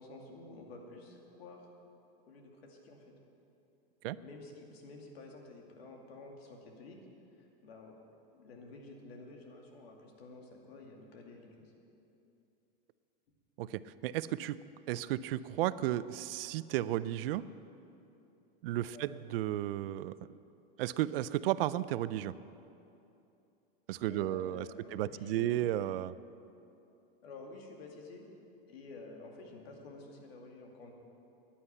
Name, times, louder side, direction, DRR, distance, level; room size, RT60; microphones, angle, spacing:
voice 1, 0.0-1.7 2.3-3.1 4.2-7.0 7.4-8.0 8.3-11.7 18.9-19.1 24.1-25.6 27.2-28.3 28.7-30.9, left 3 dB, 85° left, 1 dB, 2.4 m, -51 dB
voice 2, 13.6-14.6 14.9-17.5 18.6-20.2 20.8-22.3 23.9-26.1, right 13 dB, 70° right, 16 dB, 0.5 m, -33 dB
10.5 x 9.7 x 8.8 m, 2.8 s
supercardioid pair, 145°, 30 cm